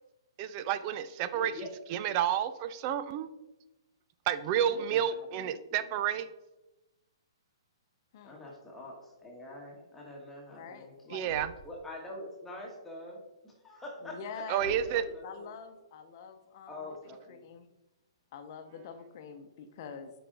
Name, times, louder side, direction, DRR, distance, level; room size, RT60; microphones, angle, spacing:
voice 1, 0.4-1.5 1.9-3.3 4.3-6.3 11.1-11.5 14.5-15.0, right 9 dB, 35° right, 13 dB, 0.5 m, -30 dB
voice 2, 1.3-1.7 4.6-5.8 8.2-11.1 11.6-13.2 13.4-14.4 14.8-15.5 16.7-17.4, left 1 dB, 10° left, -3 dB, 1.6 m, -45 dB
voice 3, 10.5-11.3 14.0-16.9 17.3-17.7 18.3-20.1, left 6 dB, 45° left, 7 dB, 0.8 m, -46 dB
Thump thud, 11.2-11.8 14.5-15.1, equal, 90° right, 1.2 m, -48 dB
9.3 x 5.0 x 3.9 m, 1.0 s
hypercardioid pair, 135°, 3 cm